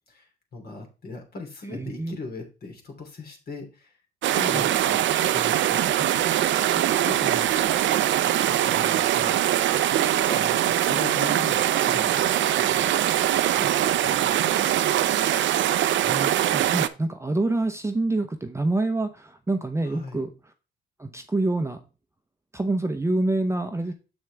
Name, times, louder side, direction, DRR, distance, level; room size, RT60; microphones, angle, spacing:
voice 1, 0.5-4.0 4.3-5.0 5.3-8.1 8.5-13.0 13.3-15.2 19.8-20.3, left 3 dB, 50° left, 2 dB, 3.1 m, -39 dB
voice 2, 1.7-2.2 4.5-4.7 16.0-20.3 21.0-21.8 22.5-23.9, right 2 dB, 15° right, 7 dB, 0.8 m, -27 dB
sound 1, 4.2-16.9, right 12 dB, 70° right, 0.6 m, -22 dB
7.3 x 6.2 x 3.4 m, 0.32 s
cardioid pair, 90°, 20 cm